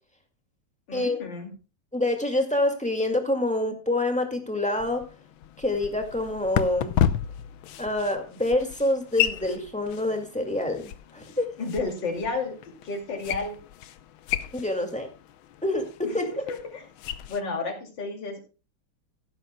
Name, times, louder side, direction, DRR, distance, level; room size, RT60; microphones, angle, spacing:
voice 1, 0.9-1.5 11.6-12.6 12.8-13.6 16.0-16.2 16.5-16.8 17.3-18.4, left 3 dB, 60° left, 3 dB, 3.2 m, -31 dB
voice 2, 1.9-5.0 5.6-7.0 7.8-11.5 14.5-15.1 15.6-16.4, left 1 dB, 5° left, 3 dB, 1.8 m, -26 dB
sound 1, 4.7-17.4, left 10 dB, 80° left, 1.5 m, -33 dB
14.5 x 12.0 x 2.2 m, 0.34 s
omnidirectional pair, 2.2 m